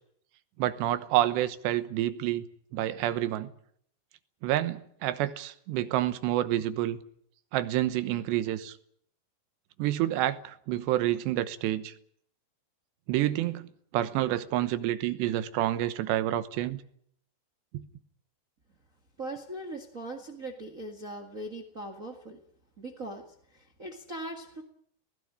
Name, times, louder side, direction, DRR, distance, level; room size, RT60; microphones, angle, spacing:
voice 1, 0.6-2.4 2.7-3.5 4.4-7.0 7.5-8.8 9.8-11.9 13.1-13.7 13.9-16.8 17.7-17.8, right 13 dB, 85° right, 3.3 m, -28 dB
voice 2, 19.2-22.4 22.8-24.6, right 1 dB, 55° right, 0.8 m, -40 dB
19.5 x 16.5 x 10.0 m
omnidirectional pair, 4.8 m